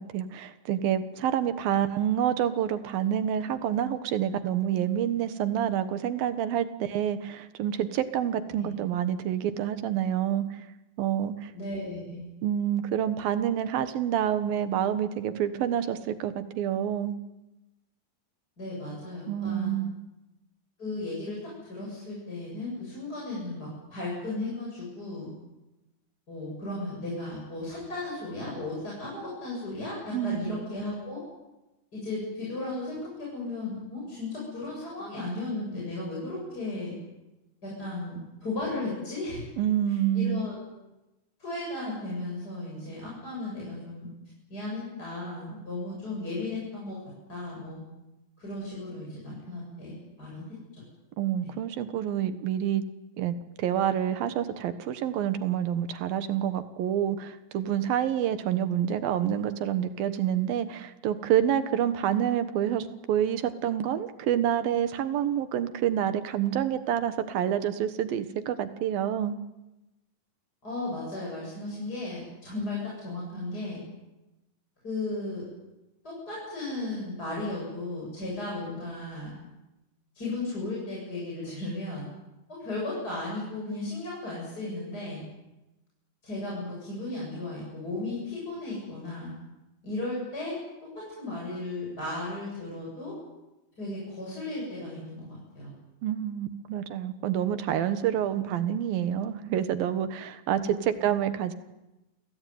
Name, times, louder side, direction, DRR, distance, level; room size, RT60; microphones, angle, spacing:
voice 1, 0.0-10.5 11.0-11.5 12.4-17.2 19.3-20.0 30.1-30.6 39.6-40.4 51.2-52.9 53.2-69.4 96.0-101.5, right 10 dB, 90° right, 11 dB, 3.2 m, -28 dB
voice 2, 11.5-12.3 18.6-19.8 20.8-25.3 26.3-31.2 31.9-36.9 37.6-39.5 39.9-40.6 41.4-44.1 44.5-47.0 47.3-47.8 48.4-50.4 50.7-50.8 70.6-73.8 74.8-75.4 76.0-79.3 80.1-82.1 82.5-85.2 86.2-89.3 89.8-90.6 90.9-93.1 93.8-95.7 100.5-101.2, left 2 dB, 25° left, -5 dB, 8.5 m, -35 dB
29.5 x 18.0 x 9.5 m, 1.0 s
omnidirectional pair, 4.0 m